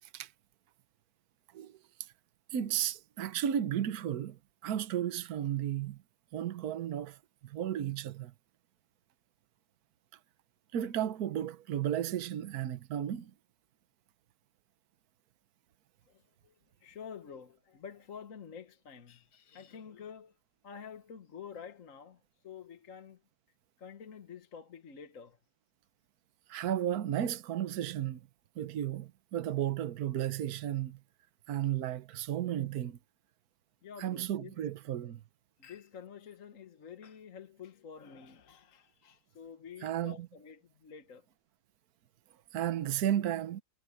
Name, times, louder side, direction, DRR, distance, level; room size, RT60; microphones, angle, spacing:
voice 1, 2.5-6.0 6.3-7.2 7.4-8.3 10.7-13.3 26.5-28.3 28.6-31.0 31.5-33.0 34.0-35.2 39.8-40.1 42.5-43.6, right 11 dB, 60° right, 1.4 m, -33 dB
voice 2, 16.1-20.4 20.6-23.2 23.8-25.4 33.8-34.6 35.6-41.3, left 7 dB, 50° left, 1.6 m, -49 dB
omnidirectional pair, 1.9 m